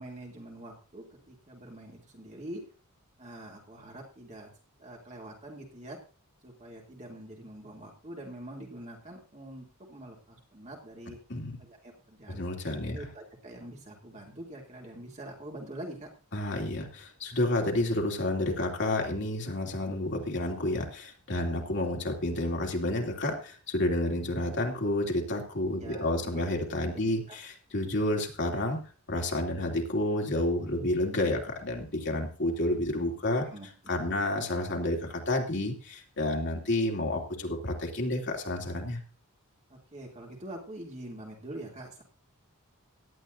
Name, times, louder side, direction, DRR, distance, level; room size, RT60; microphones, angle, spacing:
voice 1, 0.0-2.6 3.2-4.5 4.8-6.0 6.4-11.2 11.6-12.4 12.9-16.1 25.8-26.3 27.0-27.4 33.4-33.7 33.9-34.1 39.7-42.0, right 1 dB, 30° right, 0 dB, 2.7 m, -45 dB
voice 2, 12.3-13.1 16.3-28.8 29.1-33.4 33.9-39.0, left 1 dB, 55° left, 1 dB, 2.9 m, -30 dB
17.5 x 11.0 x 2.6 m, 0.38 s
head